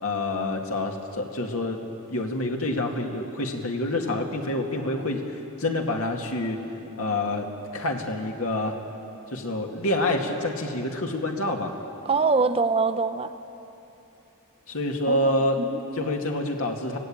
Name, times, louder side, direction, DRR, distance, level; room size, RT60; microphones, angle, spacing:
voice 1, 0.0-1.8 2.1-6.6 7.0-8.8 9.3-11.7 14.7-15.6 15.9-17.0, left 1 dB, 75° left, 2 dB, 2.3 m, -27 dB
voice 2, 12.0-13.3 15.1-15.8, right 4 dB, 25° right, 10 dB, 0.6 m, -24 dB
25.5 x 17.0 x 8.9 m, 3.0 s
head